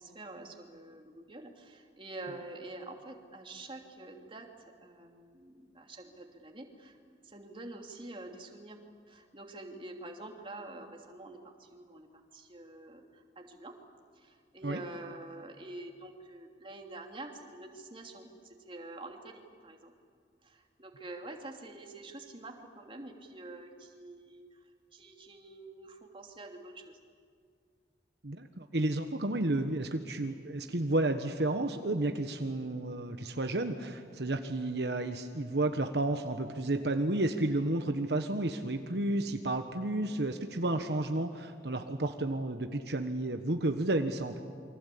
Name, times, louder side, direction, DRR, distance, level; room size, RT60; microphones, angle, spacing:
voice 1, 0.0-4.5 4.8-7.0 7.2-8.8 9.1-12.1 12.3-13.7 14.1-19.9 20.4-24.6 24.9-27.0, right 2 dB, 30° right, 2 dB, 2.9 m, -47 dB
voice 2, 28.2-44.4, right 2 dB, 70° right, 6 dB, 1.3 m, -31 dB
28.5 x 24.5 x 8.5 m, 2.1 s
head